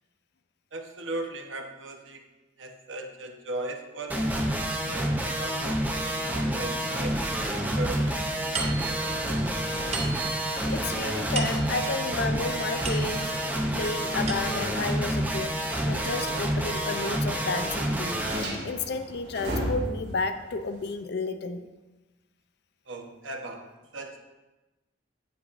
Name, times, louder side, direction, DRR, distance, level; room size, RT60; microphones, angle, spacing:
voice 1, 0.7-2.2 2.6-4.4 5.0-8.0 8.3-9.3 22.9-23.6 23.9-24.2, right 2 dB, 80° right, 3 dB, 0.9 m, -38 dB
sound 1, 4.1-18.4, right 1 dB, 10° right, 0.5 m, -28 dB
sound 2, 4.1-21.0, equal, 60° right, 2.0 m, -42 dB
sound 3, 8.5-13.5 14.0-14.9, right 5 dB, 30° right, 0.9 m, -37 dB
voice 2, 10.7-13.4 13.7-15.5 15.8-21.7, left 3 dB, 55° left, 9 dB, 0.5 m, -32 dB
8.3 x 7.9 x 2.5 m, 1.1 s
head